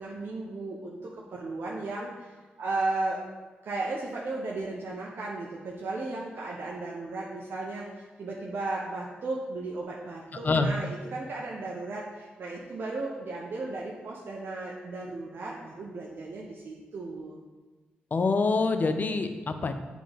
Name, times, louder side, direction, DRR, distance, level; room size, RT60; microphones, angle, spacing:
voice 1, 0.0-3.2 3.6-17.4, right 2 dB, 70° right, -3 dB, 0.9 m, -35 dB
voice 2, 18.1-19.7, left 3 dB, 45° left, 8 dB, 0.6 m, -25 dB
7.7 x 3.7 x 5.3 m, 1.3 s
cardioid pair, 60°, 4 cm